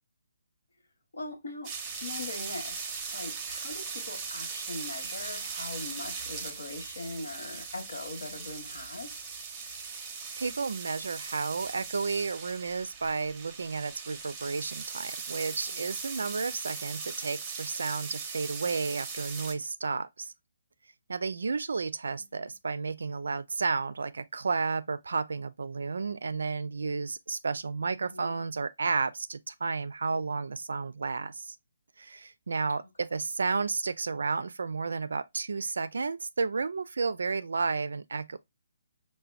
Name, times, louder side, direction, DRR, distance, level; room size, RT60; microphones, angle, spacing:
voice 1, 1.1-1.7 2.0-9.2 15.5-15.9 22.2-22.5 27.9-28.4 32.8-32.9, left 2 dB, 60° left, 1.2 m, -41 dB
sound 1, 1.6-19.5, right 5 dB, 20° right, 0.7 m, -39 dB
voice 2, 10.4-20.3 21.1-31.6 32.0-38.4, right 4 dB, 60° right, 0.3 m, -32 dB
5.6 x 2.2 x 2.4 m
figure-of-eight pair, 135°, 0 cm